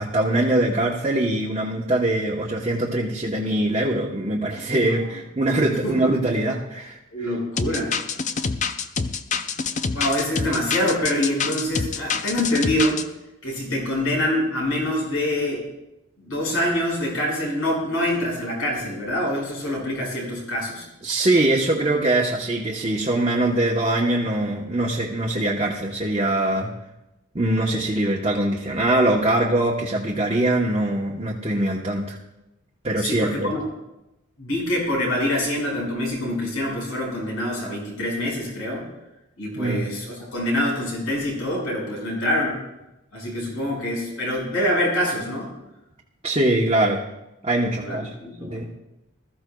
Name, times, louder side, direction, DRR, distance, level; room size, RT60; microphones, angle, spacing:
voice 1, 0.0-7.0 21.0-26.7 27.3-32.2 32.8-33.5 39.6-39.8 46.2-47.0 47.4-48.1 48.4-48.7, right 1 dB, 30° right, -4 dB, 1.0 m, -22 dB
voice 2, 7.1-8.0 9.9-13.0 13.4-15.6 16.2-20.9 33.0-33.6 34.4-38.8 39.4-42.6 43.1-45.5 47.8-48.6, left 1 dB, 85° left, -2 dB, 5.4 m, -25 dB
sound 1, 7.6-13.0, left 5 dB, 35° left, 0.5 m, -26 dB
20.5 x 14.0 x 2.3 m, 0.93 s
head